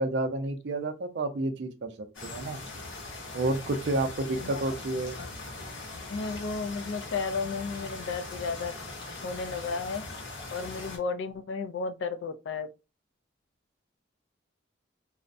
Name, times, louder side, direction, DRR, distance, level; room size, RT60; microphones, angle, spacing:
voice 1, 0.0-2.6 3.3-5.2, right 2 dB, 60° right, 0.4 m, -30 dB
sound 1, 2.1-11.0, left 2 dB, 85° left, 0.9 m, -41 dB
voice 2, 4.3-4.7 5.2-5.3 6.1-8.7 9.2-10.0 10.5-12.7, left 4 dB, 65° left, 0.4 m, -33 dB
2.4 x 2.1 x 2.5 m
head